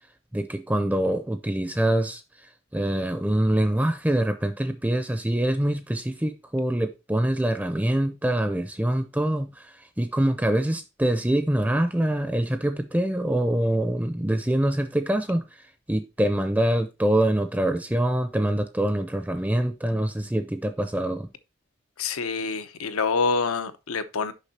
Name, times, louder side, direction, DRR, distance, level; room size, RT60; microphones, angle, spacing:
voice 1, 0.3-2.2 2.7-15.4 15.9-21.3, right 1 dB, 10° right, 0.5 m, -25 dB
voice 2, 22.0-24.3, left 4 dB, 90° left, 0.8 m, -26 dB
6.7 x 5.4 x 4.2 m
head